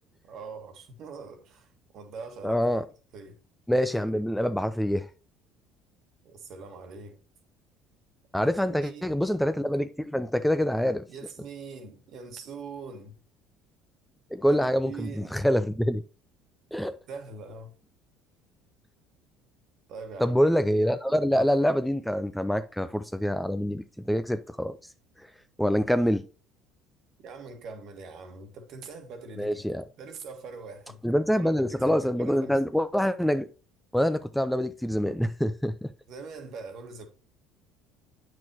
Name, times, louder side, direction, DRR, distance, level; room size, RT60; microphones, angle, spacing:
voice 1, 0.2-2.8 3.1-3.4 6.2-7.2 8.4-9.1 11.1-13.2 14.5-15.4 17.1-17.7 19.9-20.4 27.2-29.7 30.0-32.6 36.1-37.1, right 4 dB, 55° right, 1.6 m, -43 dB
voice 2, 2.4-2.8 3.7-5.1 8.3-11.1 14.3-16.0 16.7-16.9 20.2-24.8 25.2-25.3 25.6-26.2 29.4-29.8 31.0-33.5 33.9-35.9, equal, 5° left, 0.6 m, -25 dB
8.9 x 6.1 x 2.9 m
hypercardioid pair, 60°, 0 cm